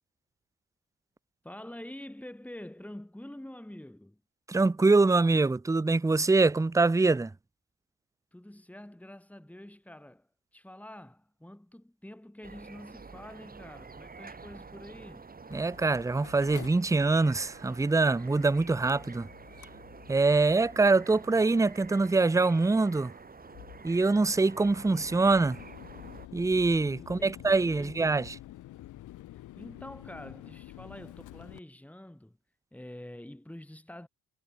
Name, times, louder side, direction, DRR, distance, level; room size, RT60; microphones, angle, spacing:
voice 1, 1.4-4.2 8.3-15.4 27.0-28.0 29.3-32.4 32.7-34.1, left 1 dB, 5° left, 4.7 m, -47 dB
voice 2, 4.5-7.3 15.5-19.3 20.1-23.1 23.8-25.6 26.3-28.4, right 3 dB, 10° right, 0.7 m, -24 dB
sound 1, 12.4-26.3, right 4 dB, 30° right, 5.0 m, -49 dB
Mechanical fan, 15.5-31.6, left 14 dB, 85° left, 5.3 m, -50 dB
cardioid pair, 90°, 30 cm